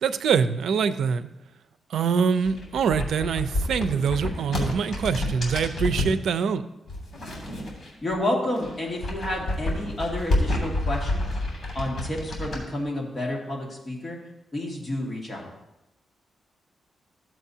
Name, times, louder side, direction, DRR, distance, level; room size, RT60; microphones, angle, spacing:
voice 1, 0.0-1.3 1.9-6.6, right 6 dB, 80° right, 12 dB, 0.5 m, -24 dB
sound 1, 2.4-6.2 6.9-8.2 8.5-12.6, left 1 dB, 40° left, 3.1 m, -29 dB
voice 2, 8.0-11.3 11.7-14.2 14.5-15.5, left 1 dB, 25° left, -2 dB, 2.3 m, -30 dB
14.5 x 7.5 x 2.8 m, 0.93 s
cardioid pair, 115°, 0 cm